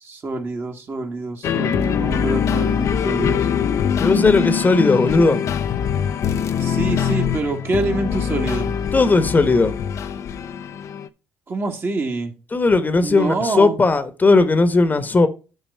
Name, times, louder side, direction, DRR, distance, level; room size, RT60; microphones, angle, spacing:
voice 1, 0.0-3.5 6.6-8.7 11.5-12.3 13.0-13.8, right 3 dB, 40° right, 1.8 m, -26 dB
sound 1, 1.4-11.1, left 8 dB, 60° left, 0.6 m, -23 dB
voice 2, 4.0-5.4 8.9-9.7 12.5-15.3, left 3 dB, 30° left, 1.1 m, -16 dB
9.2 x 4.0 x 5.5 m
hypercardioid pair, 55°, 6 cm